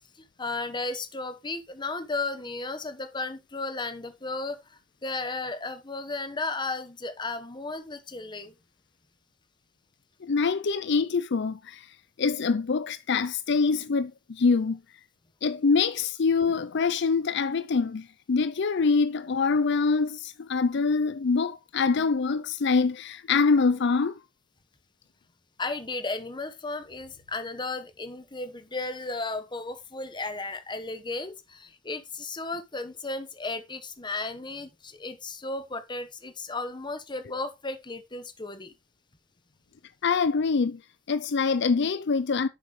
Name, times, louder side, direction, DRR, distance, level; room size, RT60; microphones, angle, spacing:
voice 1, 0.4-8.5 25.6-38.7, left 3 dB, 25° left, 1.2 m, -34 dB
voice 2, 10.2-14.8 15.4-24.2 40.0-40.8 41.1-42.5, left 4 dB, 60° left, 0.5 m, -25 dB
9.9 x 7.7 x 3.2 m
head